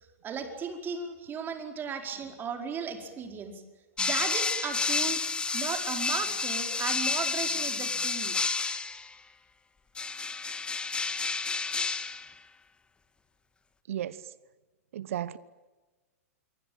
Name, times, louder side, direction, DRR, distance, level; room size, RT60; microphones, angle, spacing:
voice 1, 0.2-3.6 4.0-8.4, right 6 dB, 25° right, 4.9 m, -36 dB
sound 1, 4.0-9.1 10.0-12.3, left 4 dB, 10° left, 1.6 m, -30 dB
voice 2, 13.9-14.3 14.9-15.4, right 11 dB, 65° right, 1.0 m, -34 dB
27.5 x 24.0 x 8.9 m
hypercardioid pair, 105°, 8 cm